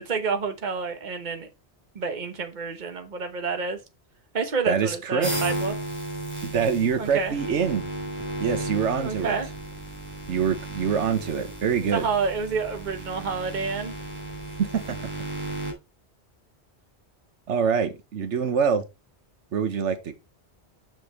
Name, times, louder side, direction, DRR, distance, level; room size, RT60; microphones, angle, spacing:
voice 1, 0.0-1.5 1.9-3.8 4.3-5.7 7.0-7.3 9.0-9.5 11.9-13.9, right 5 dB, 45° right, 1.3 m, -29 dB
voice 2, 4.7-5.3 6.4-7.9 8.4-9.4 10.3-12.1 14.6-15.1 17.5-18.8 19.5-20.1, right 6 dB, 90° right, 1.3 m, -25 dB
sound 1, 5.2-15.7, right 1 dB, 10° right, 3.8 m, -34 dB
6.9 x 6.1 x 4.3 m
omnidirectional pair, 1.1 m